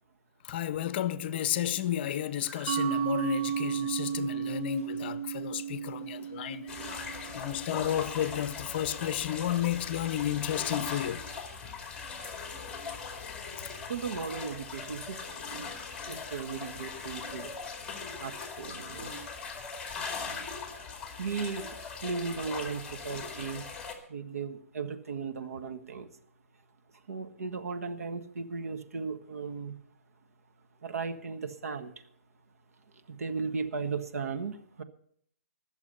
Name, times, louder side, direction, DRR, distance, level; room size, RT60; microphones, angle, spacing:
voice 1, 0.4-6.7 7.3-11.2, left 11 dB, 45° left, 0.7 m, -32 dB
sound 1, 1.6-7.4, right 1 dB, 35° right, 5.3 m, -55 dB
Mallet percussion, 2.7-8.0, right 9 dB, 55° right, 0.6 m, -34 dB
sound 2, 6.7-23.9, left 5 dB, 10° left, 2.3 m, -40 dB
voice 2, 13.9-15.5 16.1-17.5 18.2-19.1 20.7-20.9 21.2-21.8 22.0-23.6 24.1-26.1 27.1-29.7 30.8-31.9 33.1-34.8, right 5 dB, 75° right, 1.5 m, -36 dB
21.0 x 7.2 x 5.4 m
hypercardioid pair, 145°, 8 cm